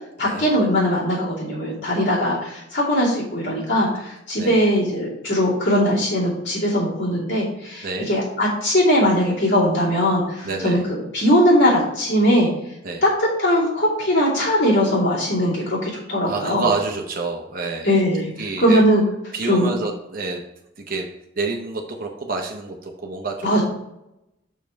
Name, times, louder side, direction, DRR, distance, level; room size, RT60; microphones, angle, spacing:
voice 1, 0.2-12.5 13.0-16.7 17.8-18.3 18.6-19.0 19.4-19.7 23.4-23.6, equal, 70° left, -8 dB, 2.7 m, -20 dB
voice 2, 7.8-8.1 10.4-10.8 12.8-13.0 16.2-17.9 18.4-18.8 19.3-20.4 20.8-21.1 21.4-23.6, right 3 dB, 50° right, 2 dB, 0.7 m, -28 dB
6.4 x 5.3 x 4.5 m, 0.85 s
head